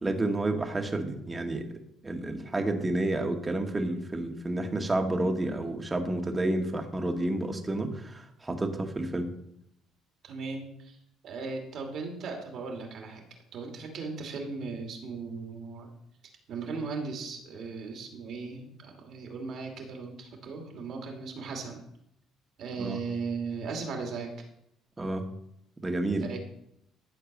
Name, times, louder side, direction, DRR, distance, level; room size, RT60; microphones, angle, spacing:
voice 1, 0.0-9.3 22.8-23.0 25.0-25.3 25.8-26.3, right 2 dB, 25° right, 4 dB, 2.0 m, -30 dB
voice 2, 10.2-11.0 11.2-13.2 13.5-15.9 16.5-21.8 22.6-24.4 26.2-26.4, right 4 dB, 65° right, 2 dB, 2.8 m, -37 dB
12.5 x 4.6 x 7.4 m, 0.76 s
hypercardioid pair, 60°, 0 cm